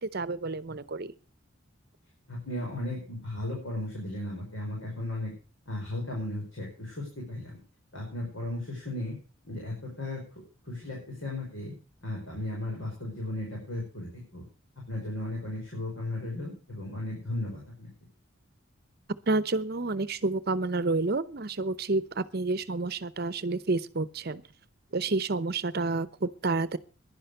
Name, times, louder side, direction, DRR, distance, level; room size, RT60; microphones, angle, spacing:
voice 1, 0.0-1.1 19.3-24.4 24.9-26.8, right 3 dB, 50° right, 16 dB, 0.8 m, -29 dB
voice 2, 2.3-5.3 5.7-7.6 7.9-9.1 9.4-10.2 10.6-11.7 12.0-14.4 14.9-17.9, left 1 dB, 75° left, -2 dB, 5.5 m, -35 dB
11.0 x 10.5 x 6.5 m, 0.36 s
head